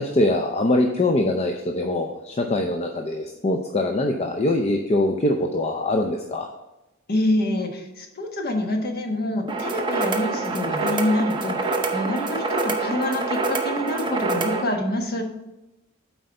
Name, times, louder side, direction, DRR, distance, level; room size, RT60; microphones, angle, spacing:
voice 1, 0.0-6.5, left 1 dB, 30° left, 3 dB, 0.5 m, -23 dB
voice 2, 7.1-15.2, left 1 dB, 50° left, 3 dB, 1.2 m, -26 dB
sound 1, 9.5-14.6, right 3 dB, 25° right, 0.7 m, -26 dB
7.8 x 4.7 x 5.3 m, 0.95 s
head